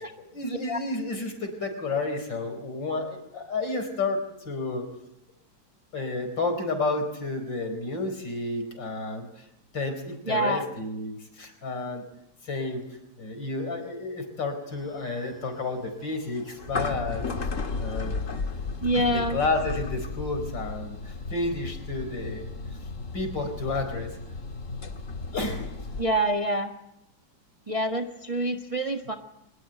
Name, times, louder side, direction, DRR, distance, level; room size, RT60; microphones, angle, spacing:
voice 1, 0.2-4.9 5.9-9.4 9.7-12.0 12.4-12.9 13.2-17.3 17.8-18.1 18.9-22.5 23.1-24.1 25.3-25.6, left 3 dB, 70° left, 7 dB, 5.1 m, -31 dB
voice 2, 10.3-10.6 18.8-19.4 26.0-26.7 27.7-29.2, right 1 dB, 20° right, 4 dB, 1.4 m, -26 dB
sound 1, 14.7-26.0, left 4 dB, 40° left, 2.1 m, -35 dB
23.5 x 20.5 x 9.0 m, 0.81 s
omnidirectional pair, 2.1 m